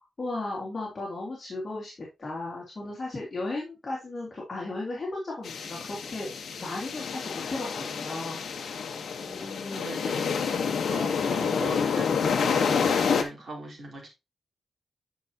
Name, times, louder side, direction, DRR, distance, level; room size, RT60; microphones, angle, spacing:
voice 1, 0.2-1.9 2.2-6.3 6.6-8.5 9.4-9.7, left 2 dB, 35° left, 2.9 m, -35 dB
sound 1, 5.4-13.2, left 6 dB, 80° left, 1.1 m, -28 dB
voice 2, 9.2-14.1, right 1 dB, 45° right, 3.6 m, -40 dB
9.2 x 5.8 x 2.8 m
wide cardioid pair, 145°, 0 cm